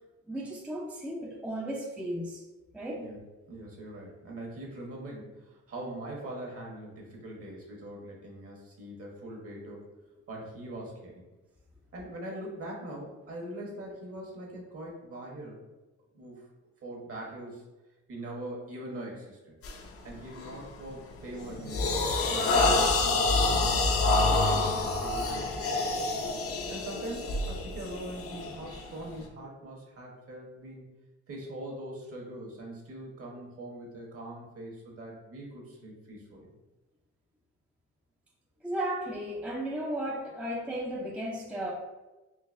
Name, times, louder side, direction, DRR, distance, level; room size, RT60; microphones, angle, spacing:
voice 1, 0.3-2.4 2.7-3.1 38.6-41.7, right 1 dB, 5° right, -2 dB, 0.5 m, -34 dB
voice 2, 3.5-9.9 10.3-11.2 11.9-15.6 16.1-16.5 16.8-17.6 18.1-19.5 20.0-23.9 24.2-25.9 26.7-30.9 31.3-36.5, right 1 dB, 50° right, -2 dB, 1.2 m, -42 dB
sound 1, 19.6-19.9 20.4-20.7 21.1-29.2, left 3 dB, 50° left, 0.6 m, -27 dB
3.8 x 2.7 x 2.5 m, 1.1 s
cardioid pair, 90°, 30 cm